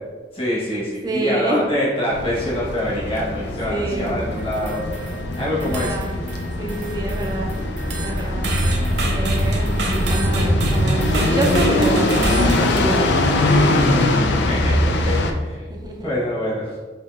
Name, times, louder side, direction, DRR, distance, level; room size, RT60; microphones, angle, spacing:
voice 1, 0.3-5.0 5.3-6.0 14.5-15.7 16.0-16.7, equal, 30° left, -8 dB, 1.2 m, -25 dB
voice 2, 1.0-1.7 3.7-4.2 5.6-6.1 6.6-7.5 8.0-8.4 9.1-13.1 15.7-16.2, right 1 dB, 20° right, 0 dB, 0.4 m, -26 dB
sound 1, 2.1-15.3, left 1 dB, 70° left, 0.4 m, -22 dB
sound 2, 4.4-5.2 5.6-6.4 6.7-12.8, right 1 dB, 65° right, 0.6 m, -26 dB
5.3 x 2.8 x 2.4 m, 1.4 s
head